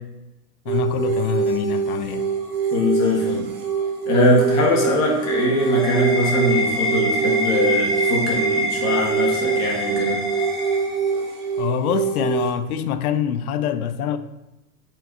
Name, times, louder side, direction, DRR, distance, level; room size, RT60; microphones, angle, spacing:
voice 1, 0.7-2.3 11.6-14.2, left 8 dB, 65° left, 0.6 m, -25 dB
sound 1, 0.7-12.5, right 6 dB, 65° right, 1.4 m, -24 dB
voice 2, 2.7-3.5 4.1-10.2, left 1 dB, 35° left, 1.9 m, -21 dB
sound 2, 5.1-11.5, equal, ahead, 0.8 m, -26 dB
7.6 x 4.7 x 2.7 m
hypercardioid pair, 120°, 48 cm